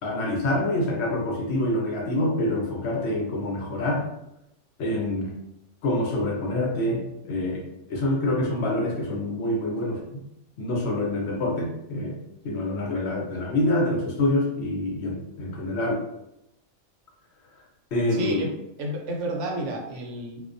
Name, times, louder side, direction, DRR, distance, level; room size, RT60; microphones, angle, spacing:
voice 1, 0.0-4.1 4.8-5.3 5.8-10.0 10.6-12.2 12.4-16.0 17.9-18.4, left 1 dB, 70° left, 0 dB, 0.8 m, -26 dB
voice 2, 18.1-18.5 18.8-20.4, right 1 dB, 80° right, 0 dB, 0.9 m, -30 dB
2.3 x 2.2 x 2.5 m, 0.82 s
omnidirectional pair, 1.3 m